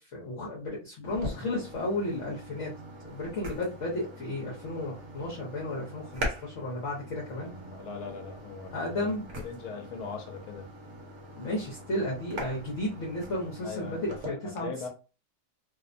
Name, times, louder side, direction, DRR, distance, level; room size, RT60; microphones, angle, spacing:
voice 1, 0.1-2.7 3.0-7.5 8.7-9.3 11.4-14.9, left 1 dB, 60° left, 1.0 m, -33 dB
sound 1, 1.1-14.3, equal, 55° right, 1.1 m, -42 dB
voice 2, 7.3-9.1 9.4-10.7 13.6-14.9, left 5 dB, 80° left, 1.1 m, -40 dB
2.8 x 2.0 x 2.5 m
omnidirectional pair, 1.6 m